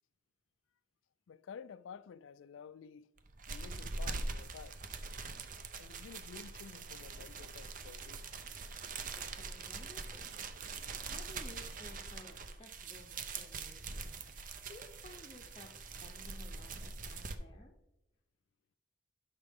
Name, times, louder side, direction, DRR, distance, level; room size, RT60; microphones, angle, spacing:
voice 1, 1.3-3.1 3.5-4.8 5.8-8.3, left 7 dB, 80° left, 0.4 m, -52 dB
sound 1, 3.2-17.4, right 4 dB, 40° right, 0.6 m, -43 dB
voice 2, 9.1-10.4 11.0-17.7, left 1 dB, 25° left, 0.7 m, -56 dB
12.0 x 5.8 x 3.6 m
head